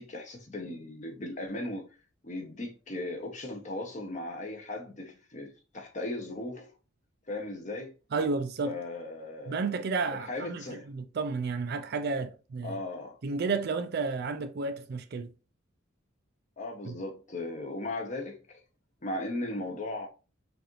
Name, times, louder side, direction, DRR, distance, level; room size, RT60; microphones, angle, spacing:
voice 1, 0.0-1.9 2.2-6.7 7.3-7.9 8.6-9.6 10.3-10.9 12.6-13.2 16.6-18.6 19.0-20.1, left 2 dB, 35° left, 0.8 m, -37 dB
voice 2, 8.1-8.8 9.5-12.8 13.2-15.3 16.9-17.0, right 4 dB, 50° right, 0.4 m, -32 dB
4.8 x 2.5 x 3.0 m
head